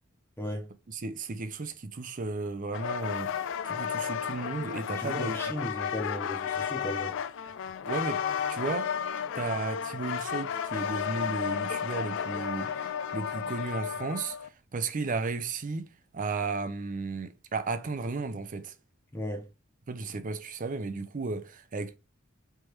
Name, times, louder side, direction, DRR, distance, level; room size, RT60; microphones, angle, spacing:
voice 1, 0.4-0.7 4.9-7.2 19.1-19.5, equal, 10° left, 0.9 m, -36 dB
voice 2, 1.0-3.3 3.6-5.7 7.8-8.2 8.5-8.9 9.3-14.4 14.7-18.7 19.9-22.0, right 3 dB, 40° right, 0.5 m, -34 dB
sound 1, 2.7-14.5, left 8 dB, 60° left, 0.4 m, -33 dB
3.4 x 3.1 x 4.4 m
head